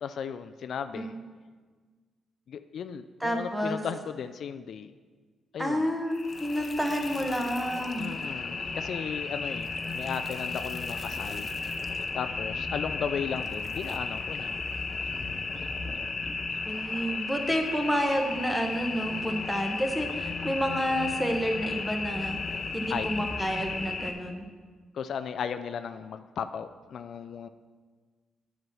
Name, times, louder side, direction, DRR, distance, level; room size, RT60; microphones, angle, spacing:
voice 1, 0.0-1.1 2.5-4.9 5.5-5.9 8.0-11.5 11.8-14.6 22.9-23.1 24.9-27.5, left 7 dB, 65° left, 10 dB, 0.3 m, -36 dB
voice 2, 3.2-3.8 5.6-8.1 16.7-22.4 22.7-24.4, equal, 5° right, 3 dB, 1.2 m, -29 dB
sound 1, 6.1-24.1, left 4 dB, 40° left, 0.8 m, -34 dB
7.9 x 6.0 x 5.5 m, 1.5 s
cardioid pair, 85°, 0 cm